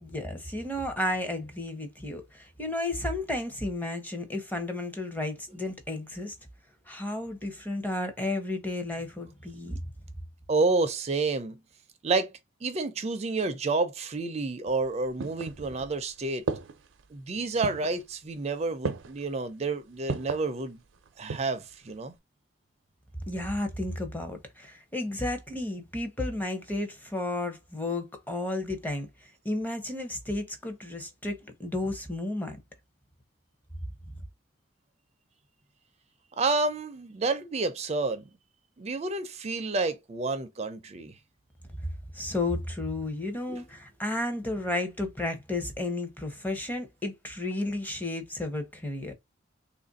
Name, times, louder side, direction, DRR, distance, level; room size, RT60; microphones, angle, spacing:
voice 1, 0.0-6.3 6.9-9.8 23.3-32.6 41.8-49.1, left 2 dB, 10° left, 0.7 m, -33 dB
voice 2, 10.5-11.6 12.0-12.3 12.6-16.5 17.1-20.8 21.2-22.1 36.4-38.2 38.8-41.1 43.5-43.6, right 3 dB, 35° right, 0.4 m, -29 dB
sound 1, 14.7-16.0 16.5-17.0 17.6-18.0 18.8-19.3 20.1-20.5 21.0-21.6 21.9-22.0, right 4 dB, 90° right, 0.5 m, -34 dB
2.9 x 2.5 x 3.9 m
head